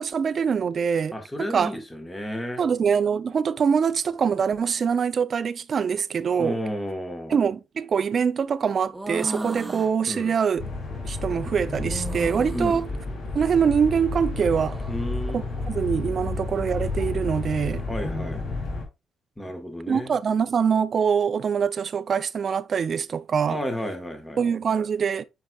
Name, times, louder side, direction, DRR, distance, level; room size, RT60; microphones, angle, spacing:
voice 1, 0.0-1.7 2.6-6.6 7.3-10.6 11.0-12.9 13.3-14.8 15.3-17.8 19.9-23.6 24.4-25.2, right 6 dB, 50° right, 0.4 m, -24 dB
voice 2, 1.1-2.6 6.4-7.3 10.1-10.3 12.5-12.8 14.9-15.5 17.9-18.4 19.4-20.2 23.4-24.4, equal, 10° left, 1.4 m, -32 dB
sound 1, 8.9-9.9 11.9-12.8 14.3-15.0, right 1 dB, 10° right, 0.9 m, -35 dB
sound 2, 10.6-18.8, left 3 dB, 55° left, 2.7 m, -31 dB
8.8 x 4.7 x 2.4 m
cardioid pair, 90°, 0 cm